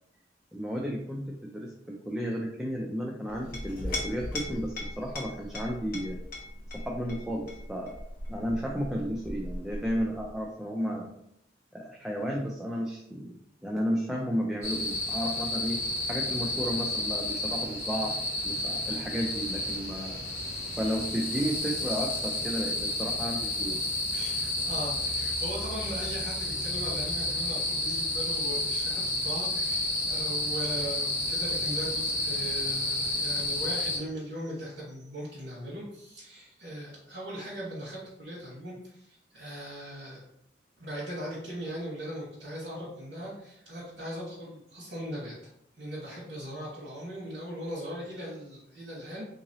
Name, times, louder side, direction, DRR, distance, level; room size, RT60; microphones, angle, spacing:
voice 1, 0.5-6.2 6.7-8.0 8.3-11.1 11.7-13.3 13.6-18.1 18.4-20.2 20.8-23.8, equal, 5° right, -2 dB, 0.3 m, -33 dB
Chink clink, 3.3-10.4, left 1 dB, 50° left, 0.9 m, -39 dB
sound 1, 14.6-34.0, left 1 dB, 15° left, 0.9 m, -31 dB
voice 2, 24.1-40.2 40.8-49.3, equal, 70° right, -7 dB, 1.2 m, -39 dB
3.7 x 3.0 x 2.7 m, 0.76 s
head